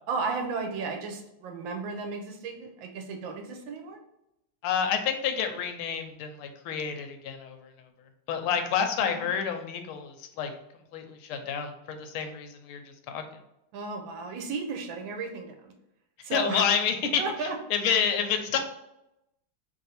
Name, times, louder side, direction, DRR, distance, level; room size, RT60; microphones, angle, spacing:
voice 1, 0.1-4.0 9.1-9.3 13.7-15.7 16.2-16.7 17.2-17.6 17.9-18.0, right 4 dB, 75° right, 4 dB, 1.2 m, -34 dB
voice 2, 4.6-7.7 8.3-10.5 10.9-13.2 16.3-17.2 17.7-18.6, left 7 dB, 90° left, 6 dB, 1.5 m, -29 dB
3.3 x 2.6 x 4.1 m, 0.85 s
omnidirectional pair, 2.3 m